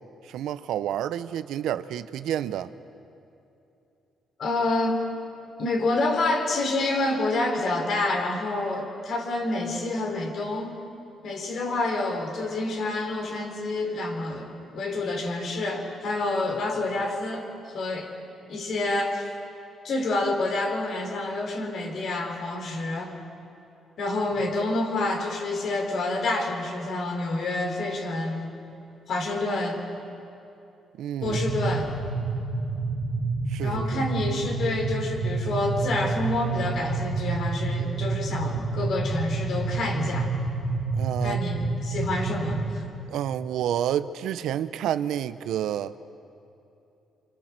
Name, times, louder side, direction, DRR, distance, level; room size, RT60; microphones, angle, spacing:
voice 1, 0.2-2.7 31.0-31.4 33.5-34.0 41.0-41.4 43.1-45.9, right 10 dB, 80° right, 0.8 m, -29 dB
voice 2, 4.4-5.0 5.6-10.8 11.2-17.4 17.7-18.1 18.5-19.3 19.8-23.1 24.0-28.5 29.1-29.8 31.2-31.9 33.6-40.3 41.2-42.8, left 2 dB, 65° left, 4.9 m, -28 dB
sound 1, 31.2-42.7, right 3 dB, 40° right, 2.5 m, -29 dB
26.5 x 26.5 x 7.6 m
cardioid pair, 90°, 0 cm